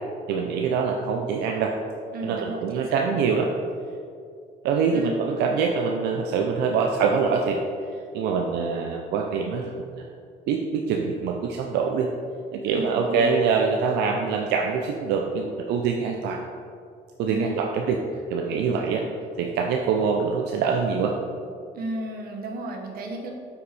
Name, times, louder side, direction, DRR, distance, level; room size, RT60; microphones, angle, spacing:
voice 1, 0.3-1.7 2.2-3.5 4.6-7.6 8.1-9.7 10.0-10.1 10.5-12.1 12.5-16.4 17.2-18.0 18.3-19.0 19.4-21.1, right 5 dB, 85° right, 2 dB, 0.6 m, -24 dB
voice 2, 2.1-3.1 4.9-5.1 12.7-13.3 17.3-17.7 21.7-23.3, right 1 dB, 60° right, 2 dB, 1.3 m, -34 dB
7.8 x 5.8 x 4.2 m, 2.4 s
cardioid pair, 110°, 17 cm